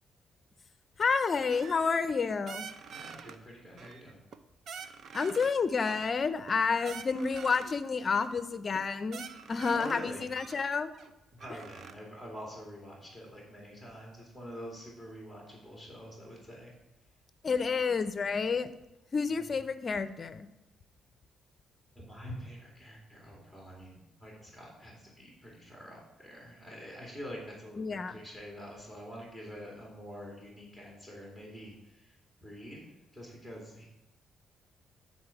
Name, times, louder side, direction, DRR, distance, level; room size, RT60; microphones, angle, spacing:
voice 1, 1.0-2.7 5.1-9.2 9.5-10.9 17.4-18.7 19.1-20.5 27.8-28.2, left 5 dB, 40° left, 12 dB, 0.5 m, -30 dB
sound 1, 1.5-2.2 2.5-3.4 3.8-4.4 4.7-5.5 5.8-7.8 8.1-8.4 8.7-8.8 9.1-10.0 10.4-11.9, right 6 dB, 60° right, 0.5 m, -46 dB
voice 2, 2.9-4.2 6.8-7.0 9.7-10.3 11.3-16.7 19.4-19.5 21.9-33.9, equal, 15° right, -3 dB, 2.4 m, -46 dB
9.5 x 4.2 x 5.7 m, 0.97 s
cardioid pair, 90°, 0 cm